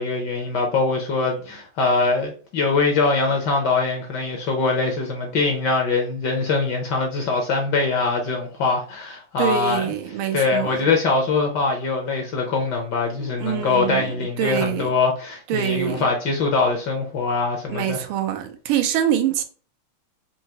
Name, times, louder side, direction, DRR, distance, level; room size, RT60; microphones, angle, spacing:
voice 1, 0.0-9.9 10.3-18.0, left 4 dB, 65° left, 1.3 m, -23 dB
voice 2, 9.4-10.9 13.4-14.9 15.5-16.1 17.7-19.4, right 10 dB, 80° right, 1.5 m, -25 dB
4.6 x 2.8 x 2.8 m
omnidirectional pair, 2.3 m